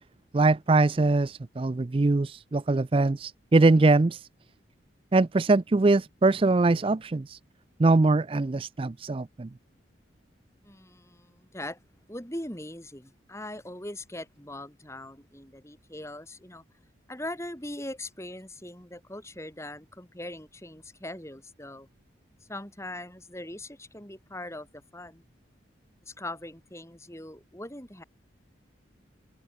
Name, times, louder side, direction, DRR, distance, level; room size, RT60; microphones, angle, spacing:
voice 1, 0.3-4.3 5.1-7.4 7.8-9.5, right 3 dB, 30° right, 0.4 m, -22 dB
voice 2, 10.6-11.8 12.1-16.6 17.1-21.9 22.4-25.2 26.0-28.0, left 1 dB, 15° left, 4.7 m, -41 dB
head